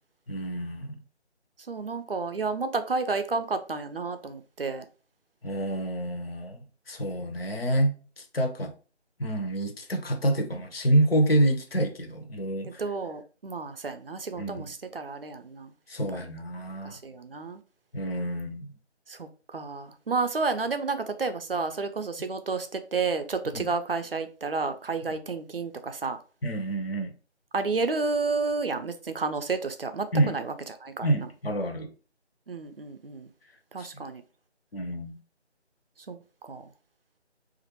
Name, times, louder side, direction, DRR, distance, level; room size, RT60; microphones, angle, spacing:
voice 1, 0.3-1.0 5.4-8.7 9.2-12.8 14.4-14.7 15.9-17.0 17.9-18.7 23.5-23.7 26.4-27.1 30.1-30.4 31.0-31.9 33.8-34.0 34.7-35.2, right 1 dB, 55° left, 0.7 m, -28 dB
voice 2, 1.7-4.9 12.6-15.7 16.8-17.6 19.1-26.2 27.5-30.5 30.8-31.3 32.5-33.3 33.7-34.2 36.1-36.6, right 4 dB, 55° right, 0.4 m, -31 dB
3.0 x 2.5 x 2.9 m
figure-of-eight pair, 165°, 35 cm